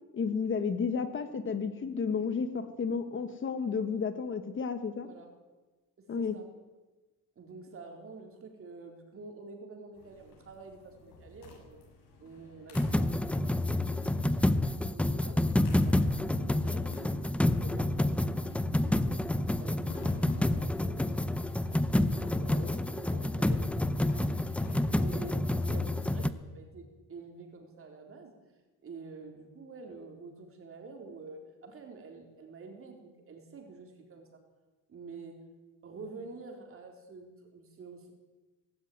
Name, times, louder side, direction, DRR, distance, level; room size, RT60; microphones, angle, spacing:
voice 1, 0.1-5.1 6.1-6.4, left 5 dB, 35° left, 9 dB, 1.4 m, -32 dB
voice 2, 4.9-5.3 6.1-6.5 7.4-11.9 12.2-14.6 14.9-17.2 17.6-21.2 21.8-26.8 27.1-28.3 28.8-34.4 34.9-35.4 35.8-38.1, right 4 dB, 40° right, 3 dB, 4.0 m, -48 dB
sound 1, 9.9-26.3, left 3 dB, 90° left, 7.2 m, -52 dB
sound 2, 12.7-26.3, left 1 dB, 5° left, 0.6 m, -28 dB
18.5 x 16.0 x 9.5 m, 1.2 s
cardioid pair, 175°, 34 cm